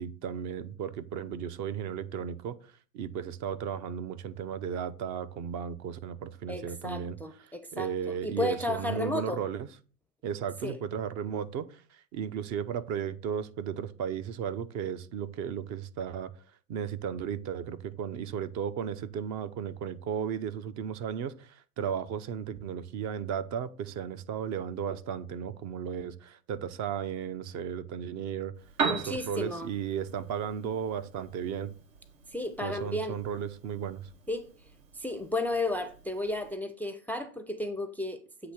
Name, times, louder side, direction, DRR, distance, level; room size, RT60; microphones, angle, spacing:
voice 1, 0.0-7.2 7.4-9.7 10.2-16.3 16.7-28.5 28.9-31.7 32.6-34.1, right 8 dB, 45° right, 0.7 m, -35 dB
voice 2, 6.5-9.4 10.6-10.8 28.8-29.7 32.3-33.2 34.3-34.5 34.9-38.5, left 2 dB, 5° left, 0.5 m, -33 dB
Piano, 28.5-36.5, right 5 dB, 80° right, 2.7 m, -40 dB
8.1 x 2.8 x 6.1 m
hypercardioid pair, 100°, 40 cm